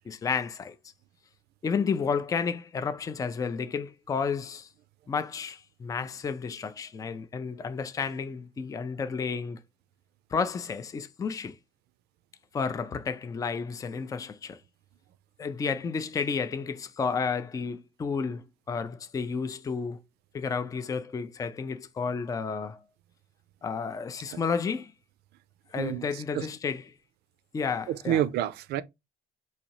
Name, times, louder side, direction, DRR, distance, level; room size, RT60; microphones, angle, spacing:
voice 1, 0.1-0.8 1.6-4.7 5.1-9.6 10.3-11.6 12.5-14.6 15.4-20.0 20.3-22.8 23.6-24.9 25.7-26.9 27.5-28.2, left 5 dB, 20° left, 0.4 m, -31 dB
voice 2, 25.8-26.1 26.3-26.5 27.9-28.8, right 12 dB, 75° right, 0.4 m, -28 dB
4.0 x 2.7 x 2.9 m
cardioid pair, 110°, 17 cm